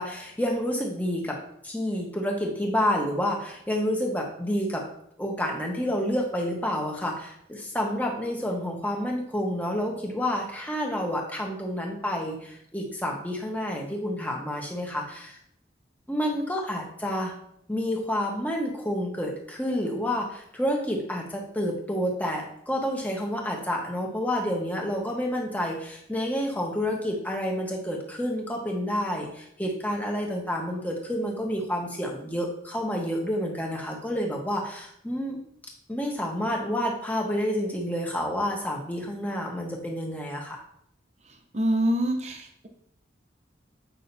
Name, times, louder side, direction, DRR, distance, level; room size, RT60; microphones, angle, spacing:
voice 1, 0.0-1.4 1.6-4.9 5.2-15.4 16.1-17.3 17.7-35.4 35.9-40.6, equal, 10° left, -1 dB, 1.2 m, -29 dB
voice 2, 41.5-42.7, right 1 dB, 35° right, 5 dB, 0.8 m, -25 dB
8.5 x 5.6 x 2.7 m, 0.72 s
head